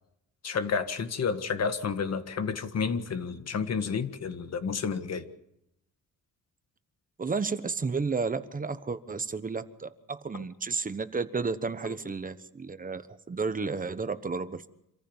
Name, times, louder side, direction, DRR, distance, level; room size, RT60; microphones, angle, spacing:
voice 1, 0.4-5.3, left 5 dB, 50° left, 10 dB, 1.7 m, -30 dB
voice 2, 7.2-14.7, right 4 dB, 25° right, 12 dB, 1.1 m, -32 dB
26.5 x 15.0 x 7.2 m, 0.82 s
cardioid pair, 125°, 32 cm